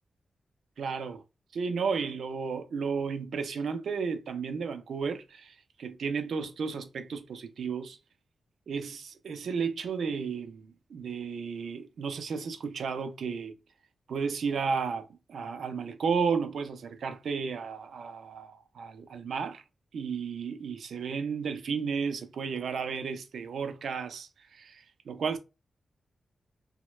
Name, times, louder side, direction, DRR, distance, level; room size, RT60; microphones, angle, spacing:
voice 1, 0.8-1.2 1.5-8.0 8.7-13.5 14.1-19.6 19.9-25.4, right 5 dB, 80° right, 0.4 m, -33 dB
3.0 x 2.2 x 3.1 m
wide cardioid pair, 140°, 0 cm